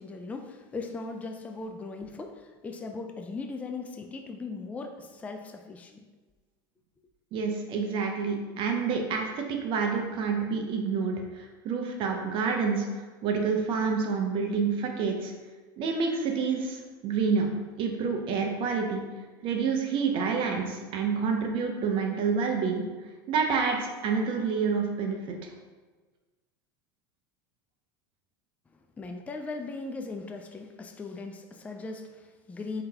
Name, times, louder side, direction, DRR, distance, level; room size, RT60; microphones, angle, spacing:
voice 1, 0.0-6.1 28.7-32.8, left 3 dB, 10° left, 4 dB, 0.3 m, -38 dB
voice 2, 7.3-15.3 15.8-17.5 17.8-19.0 19.4-22.8 23.3-25.5, right 5 dB, 50° right, 2 dB, 0.6 m, -28 dB
3.7 x 2.8 x 3.4 m, 1.3 s
supercardioid pair, 105°, 12 cm